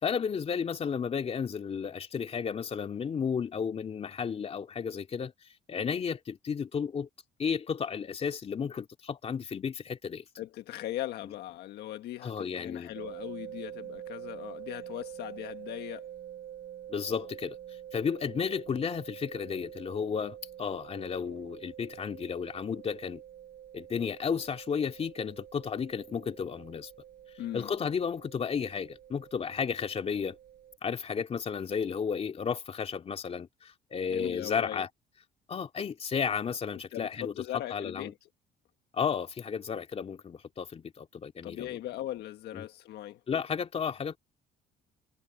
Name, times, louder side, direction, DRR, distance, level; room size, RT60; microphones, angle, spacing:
voice 1, 0.0-5.3 5.7-7.1 7.4-10.2 12.2-12.9 16.9-17.6 17.9-23.2 23.7-26.9 27.5-30.4 30.8-34.9 35.5-37.4 37.7-38.1 38.9-41.7 42.5-42.7 43.3-44.2, left 6 dB, 35° left, 2.7 m, -33 dB
voice 2, 10.4-16.1 27.4-27.7 34.1-34.8 36.9-38.1 41.4-43.2, left 13 dB, 75° left, 1.6 m, -39 dB
sound 1, 12.9-30.8, right 10 dB, 60° right, 5.3 m, -46 dB
cardioid pair, 110°, 17 cm